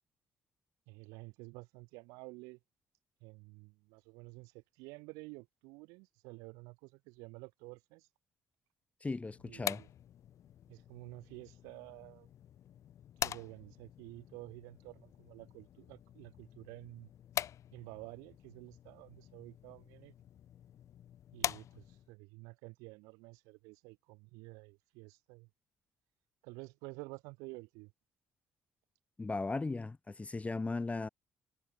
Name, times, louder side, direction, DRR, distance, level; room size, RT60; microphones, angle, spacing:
voice 1, 0.9-2.6 3.2-8.1 9.4-9.9 10.7-12.3 13.2-17.1 17.7-20.1 21.3-25.5 26.4-27.9, right 27 dB, 90° right, 2.0 m, -51 dB
voice 2, 9.0-9.8 29.2-31.1, left 3 dB, 25° left, 1.6 m, -37 dB
sound 1, 9.3-22.2, left 10 dB, 65° left, 1.6 m, -44 dB
supercardioid pair, 60°, 6 cm